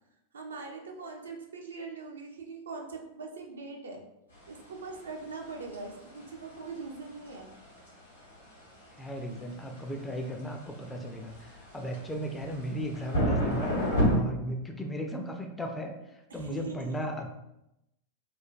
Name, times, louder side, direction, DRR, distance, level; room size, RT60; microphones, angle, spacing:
voice 1, 0.3-4.0 4.5-7.5 16.3-17.1, right 4 dB, 70° right, 1 dB, 0.4 m, -42 dB
sound 1, 4.4-14.2, equal, 80° left, 1.3 m, -33 dB
voice 2, 9.0-13.7 14.1-16.0 16.3-17.3, equal, 10° left, 2 dB, 0.3 m, -36 dB
3.1 x 2.1 x 2.4 m, 0.87 s
figure-of-eight pair, 90°, 0 cm